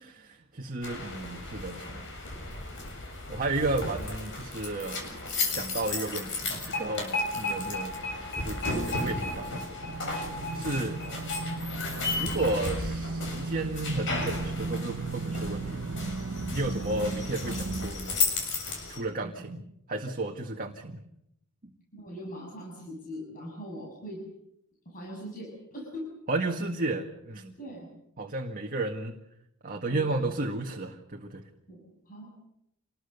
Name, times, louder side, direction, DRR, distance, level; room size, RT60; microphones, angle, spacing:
voice 1, 0.2-2.1 3.3-8.0 8.4-9.6 10.5-11.3 12.2-15.9 16.5-18.2 18.9-19.6 19.9-21.0 26.3-27.5 28.2-29.2 29.6-31.4, right 2 dB, 40° right, 2 dB, 1.9 m, -33 dB
sound 1, 0.8-19.0, left 3 dB, 60° left, 7.3 m, -34 dB
sound 2, 9.8-17.9, right 3 dB, 70° right, 1.0 m, -36 dB
voice 2, 10.6-11.0 11.4-11.6 16.4-16.6 19.2-19.5 21.9-24.2 24.9-26.0 27.6-27.9 29.9-30.4 31.7-32.3, equal, 40° left, -1 dB, 6.9 m, -42 dB
27.5 x 20.5 x 6.8 m, 0.79 s
head